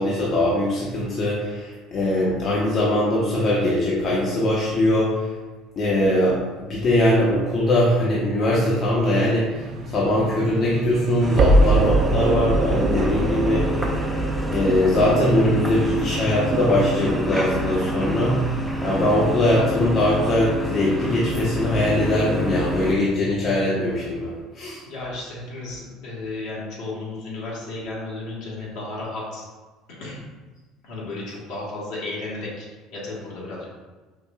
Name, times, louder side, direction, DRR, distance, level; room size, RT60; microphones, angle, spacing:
voice 1, 0.0-5.2 5.8-13.7 14.5-18.4 18.8-24.8, left 1 dB, 50° left, -5 dB, 0.7 m, -21 dB
sound 1, 9.5-20.6, right 1 dB, 55° right, 0.4 m, -25 dB
sound 2, 11.2-22.9, equal, ahead, 0.5 m, -28 dB
voice 2, 24.8-29.5 30.0-30.2 30.8-32.7 32.9-33.7, left 2 dB, 75° left, -5 dB, 1.2 m, -33 dB
4.6 x 2.6 x 2.3 m, 1.3 s
supercardioid pair, 90°, 0 cm